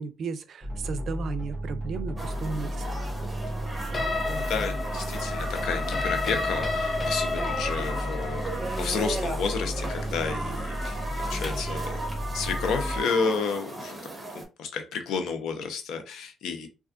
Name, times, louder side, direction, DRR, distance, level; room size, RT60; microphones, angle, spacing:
voice 1, 0.0-3.0, right 5 dB, 60° right, 0.4 m, -35 dB
sound 1, 0.6-13.0, equal, 5° left, 1.4 m, -33 dB
sound 2, 2.2-14.4, right 2 dB, 10° right, 1.2 m, -36 dB
sound 3, 3.9-11.8, left 3 dB, 35° left, 0.8 m, -32 dB
voice 2, 4.2-8.4 8.8-12.0 12.3-16.7, left 5 dB, 80° left, 0.7 m, -31 dB
3.3 x 2.4 x 2.5 m
cardioid pair, 90°, 0 cm